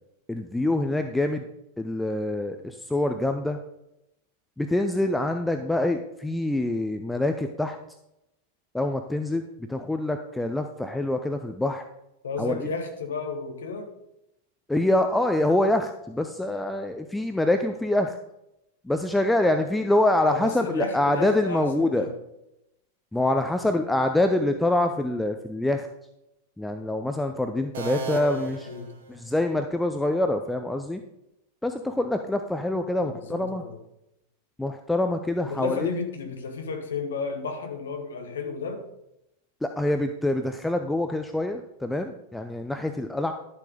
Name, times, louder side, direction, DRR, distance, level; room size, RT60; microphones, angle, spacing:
voice 1, 0.3-1.4 1.8-3.6 4.6-7.8 8.7-11.8 12.4-12.7 14.7-18.2 18.8-22.1 23.1-25.9 26.6-28.6 29.1-31.0 31.6-33.6 34.6-35.8 39.6-43.3, left 1 dB, 5° left, 0.6 m, -25 dB
voice 2, 12.2-13.9 20.2-22.2 28.1-29.0 33.0-33.8 35.4-38.9, left 4 dB, 65° left, 1.3 m, -33 dB
sound 1, 27.7-29.6, right 3 dB, 60° right, 1.7 m, -36 dB
11.5 x 7.3 x 3.9 m
figure-of-eight pair, 90°, 0 cm